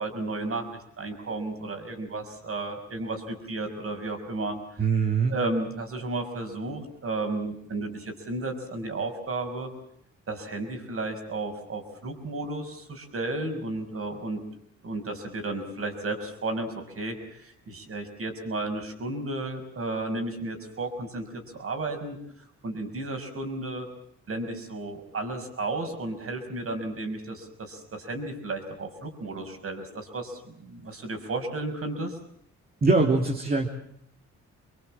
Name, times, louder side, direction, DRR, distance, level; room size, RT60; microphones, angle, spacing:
voice 1, 0.0-4.9 5.3-9.7 10.3-14.4 14.8-22.2 22.6-23.9 24.3-32.2, right 2 dB, 50° right, 6 dB, 5.9 m, -33 dB
voice 2, 4.8-5.3 32.8-33.7, right 4 dB, 30° right, 2 dB, 3.0 m, -22 dB
26.0 x 22.5 x 7.6 m, 0.70 s
cardioid pair, 90°, 30 cm